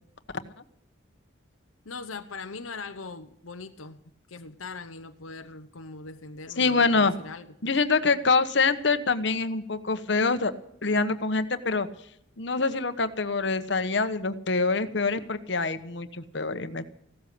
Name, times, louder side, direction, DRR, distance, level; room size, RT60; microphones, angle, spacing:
voice 1, 1.8-4.0 4.3-7.5, left 4 dB, 90° left, 0.9 m, -40 dB
voice 2, 6.6-7.1 7.6-10.5 10.8-11.9 12.4-16.9, left 4 dB, 60° left, 1.1 m, -25 dB
16.0 x 13.0 x 6.8 m
head